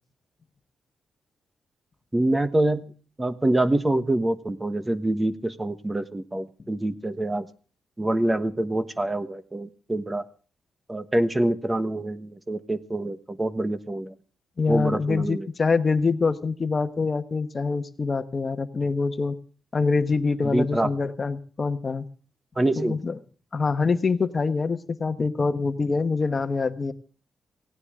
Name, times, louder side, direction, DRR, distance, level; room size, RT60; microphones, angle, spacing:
voice 1, 2.1-2.8 3.2-7.5 8.0-10.2 10.9-14.1 14.7-15.5 20.4-20.9 22.6-23.0, right 1 dB, 20° right, 12 dB, 1.2 m, -25 dB
voice 2, 14.6-19.4 19.7-22.1 22.8-23.2 23.5-26.9, left 4 dB, 40° left, 10 dB, 1.2 m, -25 dB
18.0 x 17.0 x 3.7 m, 0.39 s
cardioid pair, 85°, 0 cm